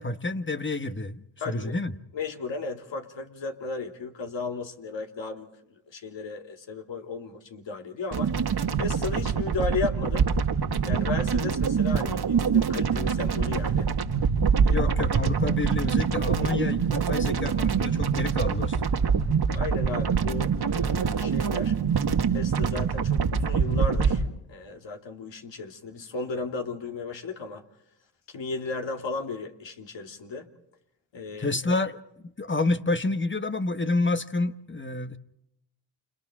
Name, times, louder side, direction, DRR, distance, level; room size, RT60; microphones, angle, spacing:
voice 1, 0.0-1.9 14.7-18.8 31.4-31.9 32.2-35.2, left 2 dB, 25° left, 1.4 m, -29 dB
voice 2, 1.4-1.8 2.1-8.3 8.8-10.3 10.8-13.9 14.6-14.9 19.5-21.7 22.3-24.2 24.5-27.6 28.3-30.5 31.1-31.7, left 4 dB, 65° left, 3.0 m, -35 dB
sound 1, 8.1-24.2, right 6 dB, 50° right, 2.0 m, -25 dB
30.0 x 27.5 x 3.8 m
supercardioid pair, 50°, 48 cm